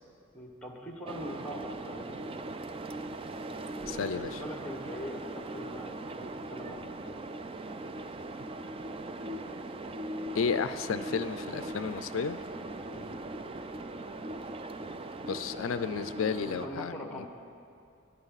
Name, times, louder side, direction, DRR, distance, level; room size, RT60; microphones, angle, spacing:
voice 1, 0.3-2.5 3.7-7.2 12.9-13.2 16.5-17.3, equal, 5° left, 2 dB, 1.4 m, -42 dB
sound 1, 1.1-16.7, right 2 dB, 25° right, 0.4 m, -40 dB
voice 2, 3.9-4.4 10.3-12.4 15.2-17.3, left 6 dB, 70° left, 12 dB, 0.4 m, -32 dB
20.5 x 10.5 x 4.0 m, 2.5 s
head